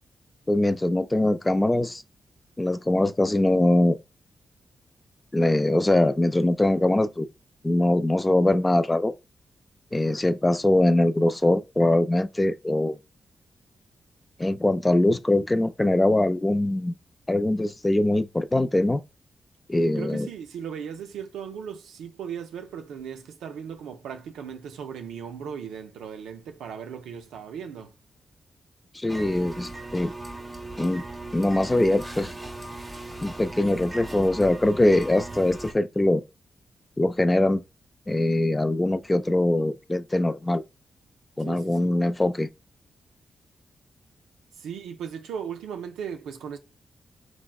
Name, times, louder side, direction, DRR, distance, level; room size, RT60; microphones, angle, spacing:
voice 1, 0.5-2.0 2.6-4.0 5.3-7.3 7.6-9.1 9.9-13.0 14.4-17.0 17.3-19.0 19.7-20.3 28.9-30.1 30.8-31.0 31.3-32.3 33.2-36.2 37.0-37.6 38.1-40.6 41.4-42.5, left 1 dB, 20° left, 0.3 m, -22 dB
voice 2, 19.9-27.9 41.4-41.9 44.5-46.6, right 7 dB, 90° right, 0.3 m, -37 dB
sound 1, 29.1-35.7, right 2 dB, 15° right, 0.8 m, -38 dB
3.3 x 2.1 x 2.3 m
supercardioid pair, 50°, 0 cm